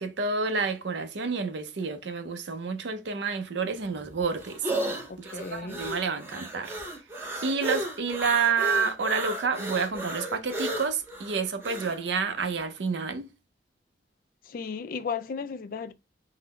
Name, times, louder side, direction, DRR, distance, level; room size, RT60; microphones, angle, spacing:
voice 1, 0.0-4.7 5.2-6.8 7.4-13.3, right 5 dB, 70° right, 0.5 m, -29 dB
sound 1, 3.7-12.0, right 1 dB, 10° right, 0.6 m, -34 dB
voice 2, 5.1-5.8 14.4-15.9, left 5 dB, 50° left, 0.3 m, -35 dB
3.7 x 2.0 x 3.1 m
head